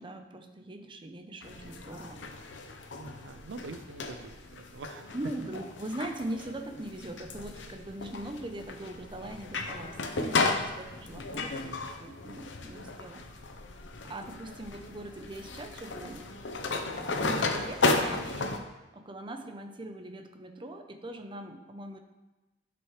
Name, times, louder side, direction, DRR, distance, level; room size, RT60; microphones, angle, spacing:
voice 1, 0.0-2.2 5.1-13.2 14.0-16.3 16.9-18.6 18.9-22.0, right 1 dB, 30° right, 6 dB, 0.7 m, -41 dB
sound 1, 1.4-18.6, left 3 dB, 85° left, 0.8 m, -34 dB
voice 2, 3.0-5.2, right 3 dB, 85° right, 9 dB, 0.5 m, -45 dB
11.0 x 6.1 x 3.2 m, 1.1 s
head